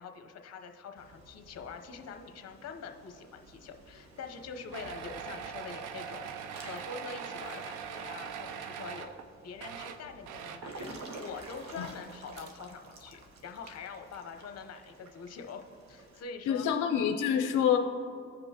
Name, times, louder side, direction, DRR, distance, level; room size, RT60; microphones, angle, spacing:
voice 1, 0.0-6.3 6.6-16.7, left 5 dB, 55° left, 5 dB, 0.9 m, -44 dB
Water / Splash splatter / Drip, 1.0-16.2, right 2 dB, 65° right, 1.1 m, -51 dB
sound 1, 4.7-9.3 9.5-10.8 12.0-12.1 12.4-12.5, right 7 dB, 90° right, 0.5 m, -41 dB
voice 2, 16.5-17.8, left 8 dB, 85° left, 4 dB, 0.5 m, -27 dB
16.0 x 5.3 x 2.9 m, 2.5 s
cardioid pair, 90°, 30 cm